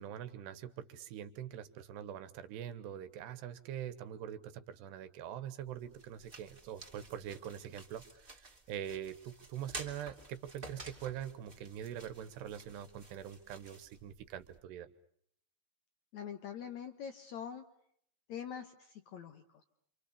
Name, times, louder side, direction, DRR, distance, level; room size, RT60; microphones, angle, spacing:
voice 1, 0.0-14.9, right 10 dB, 85° right, 12 dB, 3.4 m, -44 dB
sound 1, 5.6-14.6, right 2 dB, 15° right, 2.3 m, -52 dB
voice 2, 16.1-17.7 18.3-19.6, left 8 dB, 65° left, 8 dB, 1.9 m, -44 dB
28.0 x 27.0 x 6.9 m, 0.67 s
omnidirectional pair, 4.7 m